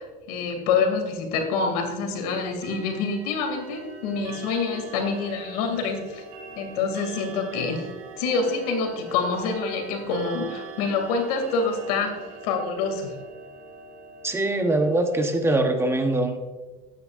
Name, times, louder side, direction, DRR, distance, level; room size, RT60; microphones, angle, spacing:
voice 1, 0.0-6.2 6.6-7.9 8.2-12.1 12.4-13.1, left 4 dB, 90° left, 4 dB, 2.5 m, -26 dB
Clock, 2.5-15.6, right 4 dB, 80° right, 2.6 m, -42 dB
voice 2, 14.2-16.5, right 2 dB, 15° right, 5 dB, 0.9 m, -23 dB
14.0 x 9.7 x 2.5 m, 1.2 s
cardioid pair, 140°, 19 cm